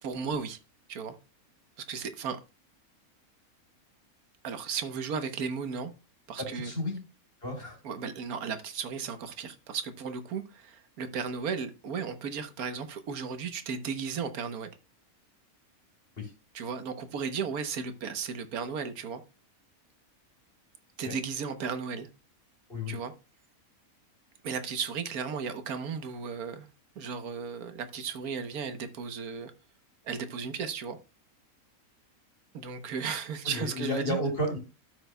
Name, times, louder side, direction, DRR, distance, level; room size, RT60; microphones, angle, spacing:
voice 1, 0.0-0.6 0.9-1.2 1.9-2.4 4.4-5.9 6.3-6.7 7.8-14.7 16.5-19.2 21.0-22.1 22.9-23.1 24.4-26.7 27.0-29.5 30.0-31.0 32.5-34.2, right 6 dB, 90° right, 1.5 m, -35 dB
voice 2, 6.4-7.0 7.4-7.8 16.2-16.3 21.0-21.2 22.7-22.9 33.4-34.6, left 1 dB, 40° left, 3.7 m, -32 dB
13.0 x 6.3 x 2.2 m
omnidirectional pair, 1.5 m